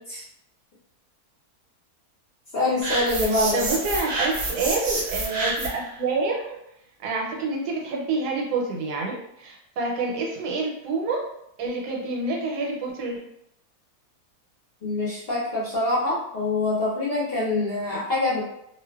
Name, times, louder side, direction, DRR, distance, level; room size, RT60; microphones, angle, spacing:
voice 1, 2.5-3.7 14.8-18.4, left 2 dB, 55° left, -7 dB, 0.7 m, -25 dB
sound 1, 2.8-5.9, right 2 dB, 65° right, 0.8 m, -28 dB
voice 2, 3.5-6.6 7.0-11.2 11.6-13.2, right 3 dB, 90° right, -1 dB, 1.2 m, -27 dB
2.5 x 2.3 x 2.3 m, 0.80 s
omnidirectional pair, 1.6 m